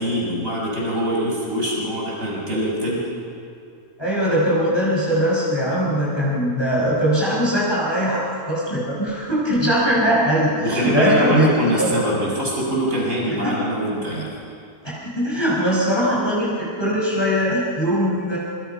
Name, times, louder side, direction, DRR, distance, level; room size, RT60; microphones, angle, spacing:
voice 1, 0.0-3.0 10.6-14.3, right 1 dB, 55° right, -4 dB, 7.0 m, -23 dB
voice 2, 4.0-11.9 13.4-13.5 14.8-18.4, equal, 15° left, -6 dB, 5.8 m, -21 dB
26.0 x 25.5 x 5.8 m, 2.4 s
omnidirectional pair, 1.7 m